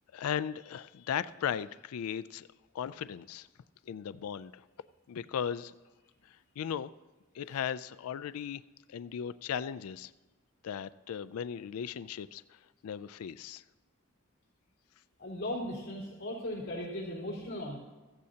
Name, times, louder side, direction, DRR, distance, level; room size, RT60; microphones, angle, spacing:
voice 1, 0.1-2.5 2.7-3.5 3.9-4.6 5.1-5.7 6.6-6.9 7.3-8.6 8.9-10.1 10.6-13.6, left 8 dB, 90° left, 16 dB, 0.4 m, -37 dB
voice 2, 15.2-17.8, left 1 dB, 45° left, -4 dB, 4.2 m, -37 dB
15.0 x 15.0 x 2.8 m, 1.2 s
head